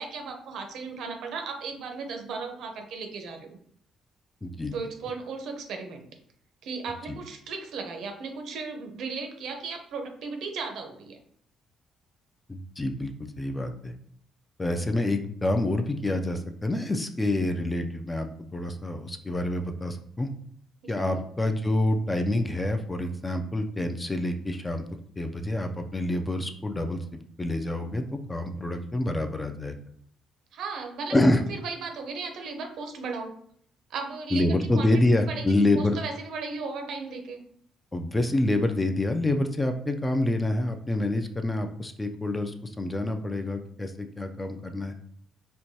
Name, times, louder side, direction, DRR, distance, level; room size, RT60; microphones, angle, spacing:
voice 1, 0.0-3.6 4.7-6.1 6.6-11.2 21.0-21.2 30.5-31.1 31.5-33.3 33.9-34.9 35.2-35.5 35.7-37.4, right 4 dB, 70° right, 4 dB, 0.6 m, -36 dB
voice 2, 4.4-4.7 7.1-7.2 12.5-13.9 14.6-20.3 20.9-24.8 25.2-27.0 27.4-29.8 31.1-31.4 34.3-36.0 37.9-44.9, left 1 dB, 15° left, 6 dB, 0.3 m, -27 dB
4.4 x 2.2 x 2.7 m, 0.64 s
cardioid pair, 125°, 0 cm